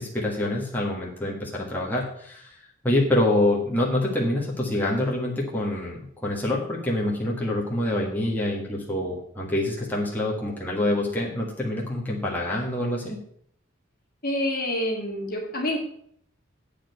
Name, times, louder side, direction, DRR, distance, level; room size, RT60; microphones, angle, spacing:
voice 1, 0.0-2.6 2.8-13.2, left 1 dB, 10° left, -4 dB, 1.5 m, -26 dB
voice 2, 14.2-15.8, left 1 dB, 50° left, 0 dB, 2.1 m, -27 dB
8.7 x 5.1 x 7.7 m, 0.66 s
head